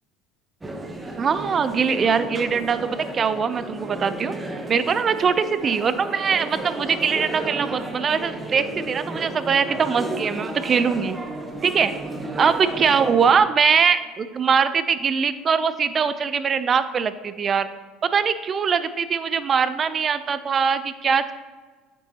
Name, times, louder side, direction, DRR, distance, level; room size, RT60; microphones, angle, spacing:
sound 1, 0.6-13.4, right 2 dB, 15° right, 1.0 m, -33 dB
voice 1, 1.2-2.8 3.1-4.3 4.7-11.2 11.6-11.9 12.4-17.7 18.0-21.3, right 6 dB, 35° right, 13 dB, 0.5 m, -22 dB
8.6 x 6.2 x 2.8 m, 1.4 s
hypercardioid pair, 80°, 0 cm